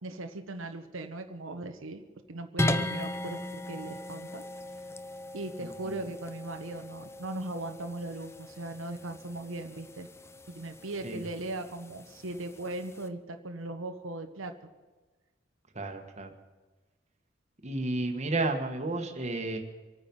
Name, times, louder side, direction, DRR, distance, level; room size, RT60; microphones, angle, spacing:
voice 1, 0.0-3.4 3.7-4.4 5.3-10.1 10.5-14.5, right 2 dB, 90° right, 6 dB, 1.1 m, -38 dB
sound 1, 2.6-13.1, left 1 dB, 15° left, 0.6 m, -38 dB
voice 2, 15.7-16.3 17.6-19.6, right 2 dB, 35° right, 4 dB, 1.6 m, -32 dB
25.5 x 9.3 x 5.4 m, 1.2 s
head